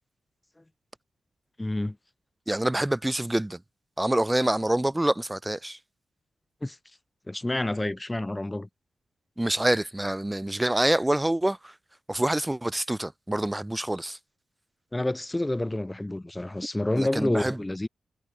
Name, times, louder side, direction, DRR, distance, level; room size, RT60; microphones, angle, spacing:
voice 1, 1.6-2.0 6.6-6.8 7.3-8.7 14.9-17.9, left 1 dB, 20° left, 1.2 m, -28 dB
voice 2, 2.5-3.6 4.0-5.8 9.4-11.7 12.1-14.2 17.0-17.6, right 1 dB, 15° right, 0.7 m, -26 dB
supercardioid pair, 40°, 0 cm